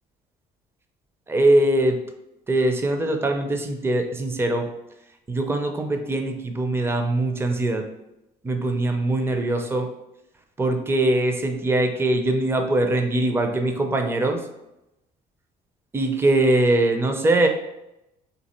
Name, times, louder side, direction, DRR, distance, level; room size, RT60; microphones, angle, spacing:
voice 1, 1.3-2.0 2.5-4.7 5.3-7.9 8.4-9.9 10.6-14.4 15.9-17.5, right 1 dB, 15° right, 5 dB, 0.5 m, -22 dB
3.9 x 2.4 x 4.3 m, 0.89 s
cardioid pair, 110°, 17 cm